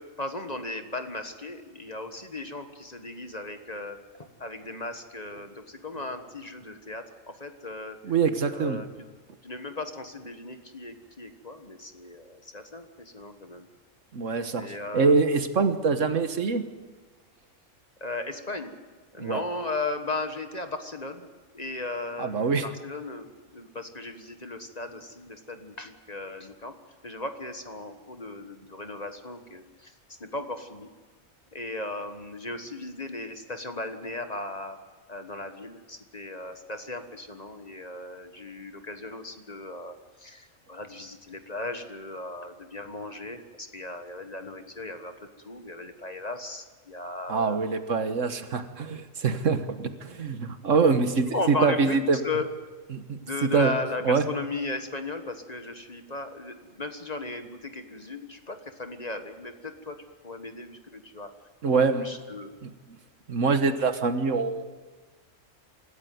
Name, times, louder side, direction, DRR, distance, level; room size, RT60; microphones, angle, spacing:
voice 1, 0.0-4.0 4.4-8.0 8.5-8.9 9.4-13.7 14.6-15.2 18.0-18.8 19.1-21.3 21.5-26.7 27.0-29.9 30.2-30.9 31.5-34.8 35.1-47.6 51.3-52.5 53.2-60.0 60.2-61.3 61.6-62.6, left 2 dB, 30° left, 7 dB, 1.5 m, -36 dB
voice 2, 8.0-8.8 14.1-16.6 19.2-19.4 22.2-22.6 47.3-52.2 52.9-53.7 54.0-54.3 61.6-62.1 62.6-62.7 63.3-64.7, right 4 dB, 70° right, 9 dB, 1.7 m, -24 dB
25.5 x 14.0 x 9.4 m, 1.4 s
omnidirectional pair, 1.3 m